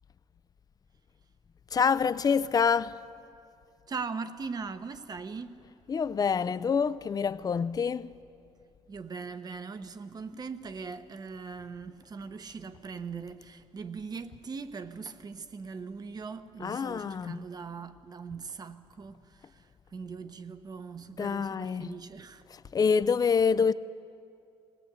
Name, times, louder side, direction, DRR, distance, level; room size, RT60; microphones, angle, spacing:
voice 1, 1.7-3.0 5.9-8.1 16.6-17.4 21.2-22.0 22.5-23.7, left 6 dB, 30° left, 0.4 m, -26 dB
voice 2, 3.9-5.6 8.9-22.4 23.3-23.4, right 5 dB, 35° right, 0.9 m, -40 dB
20.0 x 19.0 x 8.2 m
cardioid pair, 125°, 12 cm